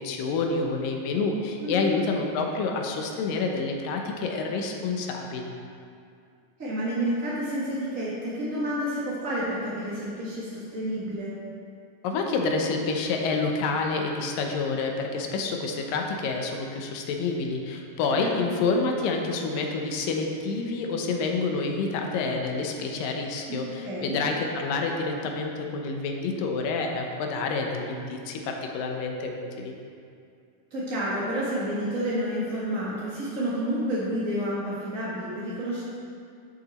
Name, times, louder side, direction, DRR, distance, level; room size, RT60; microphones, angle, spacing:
voice 1, 0.0-5.6 12.0-29.8, left 4 dB, 80° left, 2 dB, 2.5 m, -28 dB
voice 2, 1.6-1.9 6.6-11.3 18.1-18.6 23.5-24.2 30.7-35.8, equal, 45° right, -8 dB, 1.0 m, -30 dB
11.0 x 6.7 x 4.3 m, 2.4 s
omnidirectional pair, 4.0 m